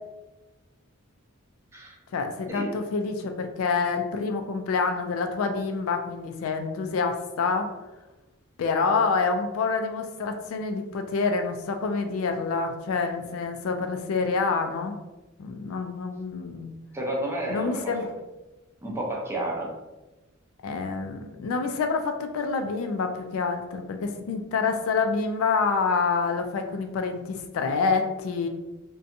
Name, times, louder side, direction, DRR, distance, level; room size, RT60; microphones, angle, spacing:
voice 1, 2.1-7.7 8.6-15.0 15.4-16.7 17.5-18.1 20.6-28.5, left 4 dB, 70° left, 6 dB, 0.3 m, -27 dB
voice 2, 16.9-18.1 18.8-19.7, right 1 dB, 10° right, -2 dB, 0.5 m, -31 dB
2.6 x 2.2 x 2.5 m, 1.1 s
head